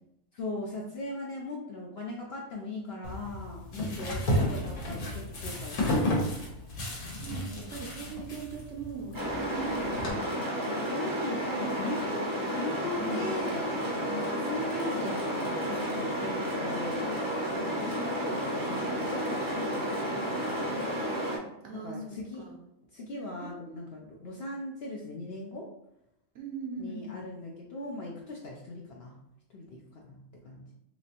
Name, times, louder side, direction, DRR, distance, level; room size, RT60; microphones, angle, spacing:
voice 1, 0.3-6.1 10.9-13.7 14.1-17.2 17.5-21.0 21.8-22.4 22.9-25.7 26.8-29.2 29.5-30.7, left 2 dB, 60° left, -2 dB, 0.6 m, -39 dB
sound 1, 3.0-10.1, equal, 85° left, 1.4 m, -32 dB
voice 2, 3.7-4.2 7.0-10.3 11.4-11.8 12.9-13.4 21.6-22.6 23.4-23.9 26.3-27.3, right 4 dB, 65° right, 1 dB, 0.8 m, -40 dB
sound 2, 9.1-21.4, equal, 25° right, 0.5 m, -32 dB
3.3 x 3.0 x 2.8 m, 0.81 s
omnidirectional pair, 1.5 m